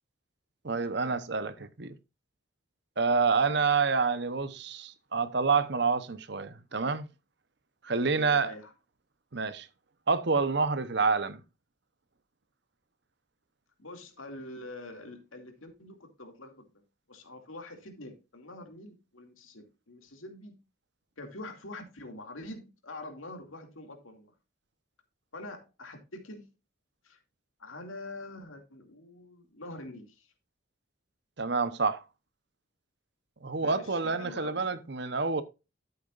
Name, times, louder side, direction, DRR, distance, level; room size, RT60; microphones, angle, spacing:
voice 1, 0.6-2.0 3.0-7.1 7.8-8.5 9.3-9.7 10.1-11.4 31.4-32.0 33.4-35.4, right 4 dB, 55° right, 0.9 m, -28 dB
voice 2, 8.0-8.7 13.8-16.7 17.1-20.6 21.2-24.3 25.3-26.5 27.0-27.2 27.6-30.3 33.5-34.8, left 2 dB, 85° left, 2.4 m, -45 dB
13.0 x 8.2 x 2.5 m
head